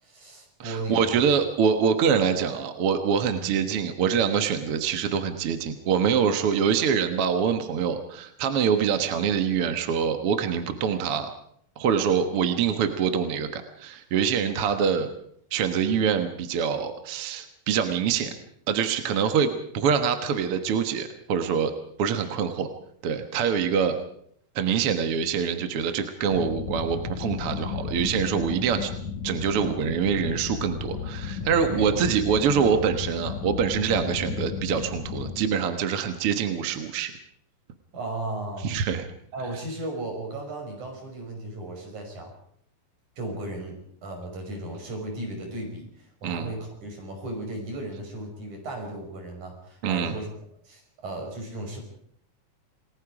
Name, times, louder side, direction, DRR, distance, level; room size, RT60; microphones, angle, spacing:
voice 1, 0.0-1.2 3.3-3.6 31.7-32.2 37.9-38.7 39.3-42.3 43.2-50.3 50.7-51.8, right 1 dB, 80° right, 2 dB, 7.2 m, -35 dB
voice 2, 0.6-11.3 11.8-15.1 15.5-18.3 18.7-21.7 22.0-22.7 23.0-23.9 24.6-28.9 29.2-37.1 38.6-39.1 46.2-46.5 49.8-50.1, right 7 dB, 55° right, 7 dB, 2.1 m, -25 dB
sound 1, 26.3-35.5, left 6 dB, 80° left, 2.6 m, -34 dB
28.5 x 20.0 x 5.0 m, 0.66 s
omnidirectional pair, 3.4 m